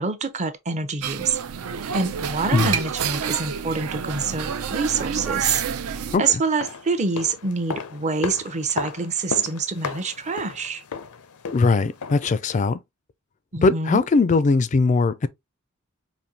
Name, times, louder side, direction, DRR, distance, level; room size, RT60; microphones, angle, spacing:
voice 1, 0.0-1.4 1.9-5.6 5.9-10.8 13.5-14.0, right 4 dB, 30° right, 0.6 m, -26 dB
sound 1, 1.0-6.2, right 7 dB, 75° right, 0.5 m, -28 dB
sound 2, 6.4-12.4 12.7-12.8, left 5 dB, 85° left, 0.6 m, -34 dB
voice 2, 11.5-12.8 13.6-15.3, left 4 dB, 35° left, 0.3 m, -20 dB
5.2 x 2.6 x 2.7 m
head